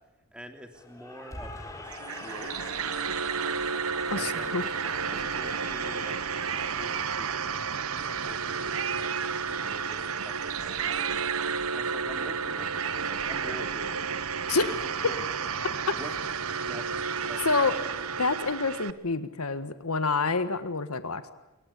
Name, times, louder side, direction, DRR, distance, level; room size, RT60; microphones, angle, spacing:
voice 1, 0.3-2.5 4.1-4.7 5.1-6.2 6.5-7.4 8.0-9.2 9.6-11.2 11.7-14.1 14.8-15.3 15.9-16.1 16.5-16.9 17.2-17.4 17.7-18.0, equal, 5° right, 6 dB, 2.9 m, -46 dB
Cheering / Applause, 0.7-7.0, left 2 dB, 15° left, 3.7 m, -44 dB
Cat, 1.9-3.3 4.2-5.6 6.0-6.1 6.3-7.9 8.7-10.1 10.7-12.0 12.5-14.5 14.8-14.9 15.2-18.0 18.3-18.4, right 9 dB, 65° right, 1.0 m, -39 dB
sound 1, 1.9-18.9, right 6 dB, 80° right, 1.2 m, -32 dB
voice 2, 4.1-4.6 14.5-14.8 17.4-17.7 18.2-21.3, left 4 dB, 85° left, 11 dB, 1.6 m, -27 dB
27.5 x 23.5 x 8.5 m, 0.99 s
head